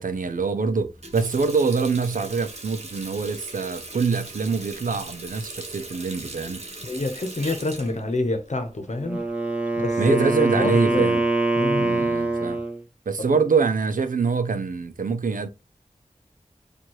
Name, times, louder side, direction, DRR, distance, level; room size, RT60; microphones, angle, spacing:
voice 1, 0.0-6.6 10.0-11.2 11.7-12.6 13.1-15.5, right 4 dB, 85° right, 0.5 m, -24 dB
Water tap faucet, 0.8-9.3, right 2 dB, 50° right, 1.1 m, -40 dB
voice 2, 6.8-9.2 9.8-11.2 11.6-12.1 13.3-13.4, left 2 dB, 60° left, 0.9 m, -28 dB
Wind instrument woodwind instrument, 8.9-12.8, right 2 dB, 10° right, 1.1 m, -24 dB
4.4 x 2.6 x 3.0 m
wide cardioid pair, 40°, 14 cm